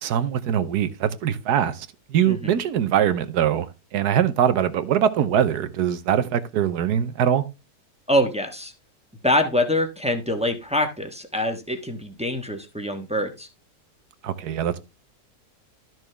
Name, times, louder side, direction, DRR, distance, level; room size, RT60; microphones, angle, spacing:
voice 1, 0.0-7.4 14.2-14.8, right 9 dB, 85° right, 1.4 m, -22 dB
voice 2, 8.1-8.7 9.2-13.5, left 1 dB, 5° right, 1.0 m, -24 dB
12.5 x 6.2 x 3.4 m
omnidirectional pair, 1.7 m